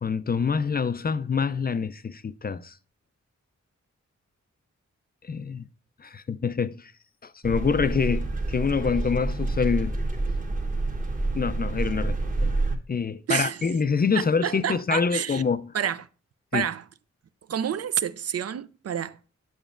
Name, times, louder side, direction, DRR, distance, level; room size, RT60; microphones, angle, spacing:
voice 1, 0.0-2.7 5.2-5.6 6.0-6.9 7.2-10.0 11.3-12.5 12.9-15.7 16.5-16.7, left 5 dB, 35° left, 0.4 m, -26 dB
sound 1, 7.4-12.8, right 2 dB, 25° right, 1.1 m, -28 dB
voice 2, 13.3-13.6 14.1-15.4 15.7-16.1 16.5-16.8 17.5-19.3, right 8 dB, 55° right, 0.4 m, -29 dB
7.7 x 7.0 x 2.5 m
cardioid pair, 45°, 29 cm